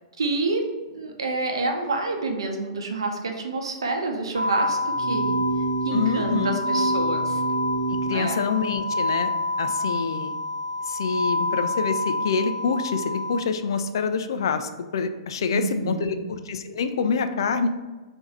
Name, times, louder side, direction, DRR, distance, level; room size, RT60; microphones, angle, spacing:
voice 1, 0.2-0.6 0.9-5.4 5.8-7.4 8.1-8.4 15.5-16.1, right 3 dB, 75° right, 3 dB, 0.6 m, -28 dB
sound 1, 4.3-13.4, left 2 dB, 85° left, 0.8 m, -28 dB
sound 2, 4.9-8.1, right 3 dB, 30° right, 1.4 m, -28 dB
voice 2, 5.9-6.6 8.0-9.3 9.6-10.4 10.8-17.7, left 5 dB, 65° left, 9 dB, 0.4 m, -26 dB
3.8 x 2.6 x 4.4 m, 1.2 s
figure-of-eight pair, 105°, 3 cm